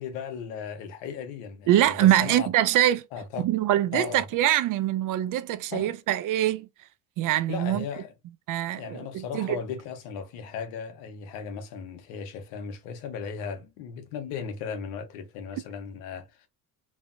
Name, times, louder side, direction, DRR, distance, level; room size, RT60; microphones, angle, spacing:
voice 1, 0.0-2.5 3.1-3.4 3.9-4.3 5.7-5.9 7.5-8.1 8.7-16.5, left 6 dB, 85° left, 0.9 m, -36 dB
voice 2, 1.7-3.0 3.4-6.7 7.2-7.8 8.5-9.6, right 13 dB, 50° right, 0.4 m, -24 dB
3.2 x 2.0 x 2.5 m
supercardioid pair, 95°, 42 cm